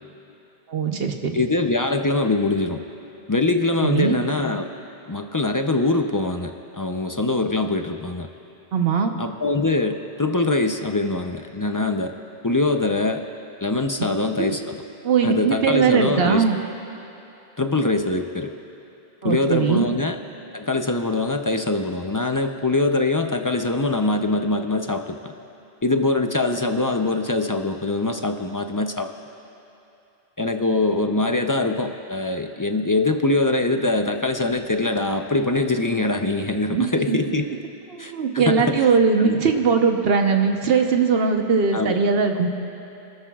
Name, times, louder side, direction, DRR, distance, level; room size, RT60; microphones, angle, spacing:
voice 1, 0.7-1.4 3.8-4.2 8.7-9.1 14.4-14.6 15.0-16.6 19.2-19.9 36.7-37.2 37.9-42.5, right 5 dB, 70° right, 4 dB, 1.1 m, -20 dB
voice 2, 1.3-2.8 3.3-4.7 5.1-8.3 9.2-12.1 12.4-13.2 13.6-14.8 15.2-16.4 17.6-18.5 19.2-20.2 20.5-25.3 25.8-29.1 30.4-37.4 38.0-38.9 39.2-39.4 41.7-42.0, left 2 dB, 30° left, 5 dB, 0.4 m, -23 dB
28.5 x 13.5 x 2.3 m, 2.9 s
omnidirectional pair, 1.1 m